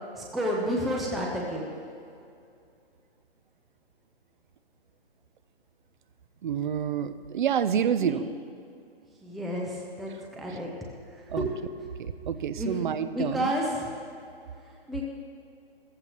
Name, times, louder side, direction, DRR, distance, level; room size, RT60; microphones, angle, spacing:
voice 1, 0.1-1.7 8.0-8.2 9.2-10.7 11.4-11.6 12.6-12.7 13.1-13.9 14.9-15.1, equal, ahead, -2 dB, 0.4 m, -30 dB
voice 2, 6.4-8.3 10.5-10.6 11.3-11.5 12.0-13.5, right 8 dB, 50° right, 12 dB, 0.6 m, -28 dB
15.5 x 14.5 x 3.0 m, 2.5 s
figure-of-eight pair, 130°, 31 cm